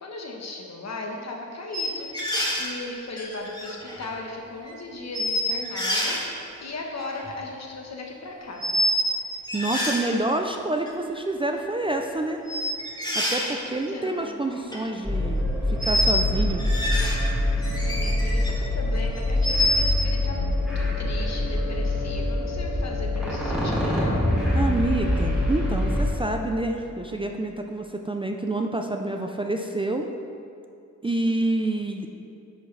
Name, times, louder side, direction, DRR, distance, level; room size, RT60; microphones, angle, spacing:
voice 1, 0.0-6.2 6.6-8.8 13.6-14.4 17.6-24.2, left 2 dB, 60° left, 0 dB, 1.1 m, -37 dB
sound 1, 1.7-2.7 3.2-4.1 4.7-4.8 5.1-6.2 7.0-7.3 8.6-9.2 9.4-10.0 10.9-11.0 12.5-13.5 14.5-14.8 15.8-16.2 16.6-17.2 17.6-18.5 18.9-20.0, left 1 dB, 15° left, 1.5 m, -26 dB
voice 2, 9.5-12.4 13.1-15.4 15.7-16.6 24.5-30.1 31.0-32.1, right 2 dB, 20° right, 3 dB, 0.4 m, -27 dB
sound 2, 15.0-26.1, left 1 dB, 5° right, 1.6 m, -25 dB
10.0 x 6.3 x 3.3 m, 2.5 s
wide cardioid pair, 120°, 30 cm